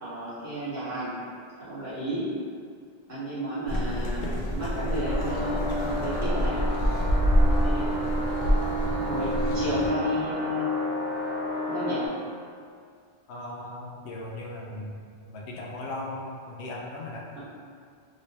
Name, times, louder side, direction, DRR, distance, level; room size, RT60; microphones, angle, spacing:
voice 1, 0.0-1.1 1.6-2.3 3.1-4.2 4.5-6.6 7.4-7.9 8.9-10.7 11.7-12.1, right 1 dB, 45° right, -12 dB, 1.4 m, -32 dB
sound 1, 3.7-9.9, equal, 55° left, 0.6 m, -27 dB
sound 2, 5.0-12.1, left 1 dB, 75° right, 1.0 m, -30 dB
voice 2, 13.3-15.0 15.3-17.4, left 1 dB, 85° left, -3 dB, 0.9 m, -37 dB
3.1 x 3.0 x 2.8 m, 2.2 s
omnidirectional pair, 1.1 m